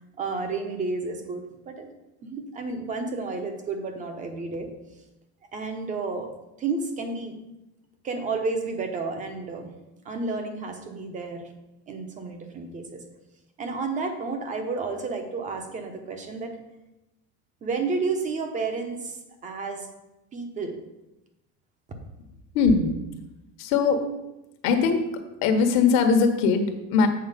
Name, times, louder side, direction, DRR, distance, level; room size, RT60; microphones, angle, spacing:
voice 1, 0.2-1.9 2.2-4.7 5.5-6.3 6.6-7.4 8.0-9.8 10.0-11.5 11.9-13.0 13.6-16.6 17.6-19.9 20.3-20.8, right 4 dB, 25° right, 6 dB, 0.9 m, -31 dB
voice 2, 22.5-22.9 23.6-24.0 24.6-25.0 25.4-27.1, left 5 dB, 60° left, 5 dB, 1.3 m, -20 dB
7.9 x 4.4 x 6.7 m, 0.97 s
cardioid pair, 170°, 31 cm